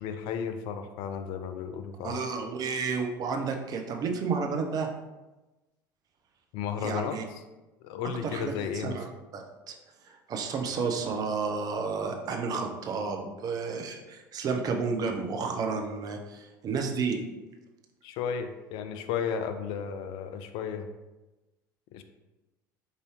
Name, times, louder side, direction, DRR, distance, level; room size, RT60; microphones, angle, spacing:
voice 1, 0.0-2.2 6.5-7.4 7.8-9.0 18.0-20.9 21.9-22.0, left 7 dB, 50° left, 8 dB, 0.3 m, -34 dB
voice 2, 2.0-4.9 6.8-7.2 8.2-9.1 9.3-9.7 10.1-17.2, right 5 dB, 35° right, 3 dB, 0.6 m, -31 dB
4.8 x 2.6 x 3.0 m, 1.1 s
figure-of-eight pair, 70°, 11 cm